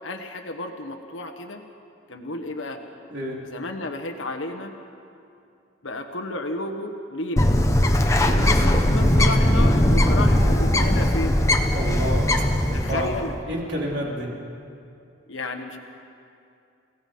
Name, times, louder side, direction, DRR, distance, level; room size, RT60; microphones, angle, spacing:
voice 1, 0.0-1.6 2.1-2.8 3.4-4.7 5.8-7.5 8.2-11.4 12.7-13.3 15.3-15.8, left 2 dB, 80° left, 4 dB, 1.4 m, -32 dB
voice 2, 3.1-3.4 11.7-12.3 12.7-13.1 13.5-14.3, equal, 65° right, -3 dB, 4.0 m, -29 dB
Bird, 7.4-13.3, left 1 dB, 15° left, 1.1 m, -19 dB
29.5 x 17.5 x 5.6 m, 2.6 s
head